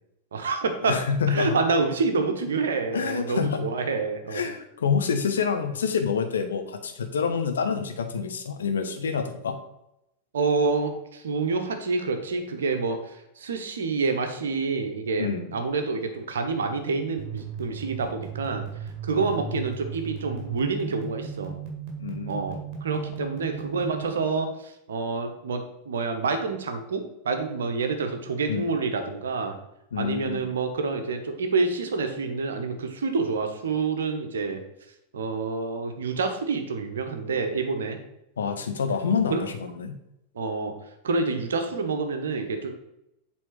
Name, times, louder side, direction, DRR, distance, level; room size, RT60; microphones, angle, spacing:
voice 1, 0.3-1.0 1.3-4.4 10.3-18.6 19.1-21.5 22.3-29.5 30.0-34.6 35.1-38.0 39.3-39.4 40.3-40.7 41.0-42.7, right 4 dB, 65° right, 6 dB, 1.0 m, -28 dB
voice 2, 0.8-1.6 2.9-3.7 4.3-9.6 15.2-15.5 19.1-19.5 22.0-22.4 28.5-28.7 29.9-30.5 38.4-40.0, left 6 dB, 65° left, 6 dB, 0.8 m, -27 dB
sound 1, 17.2-24.0, right 7 dB, 40° right, 1.9 m, -36 dB
7.7 x 3.6 x 4.7 m, 0.85 s
figure-of-eight pair, 90°, 0 cm